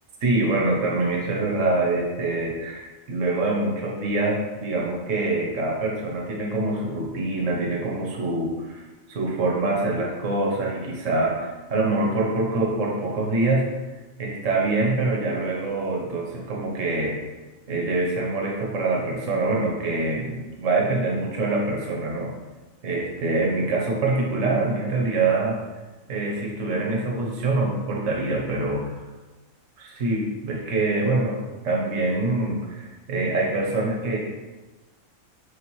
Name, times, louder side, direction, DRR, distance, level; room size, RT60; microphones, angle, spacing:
voice 1, 0.2-13.7 14.2-17.2 17.7-22.3 22.8-25.6 26.1-28.9 29.8-31.4 31.6-34.2, right 2 dB, 70° right, -2 dB, 1.4 m, -25 dB
6.7 x 4.8 x 3.1 m, 1.2 s
omnidirectional pair, 1.4 m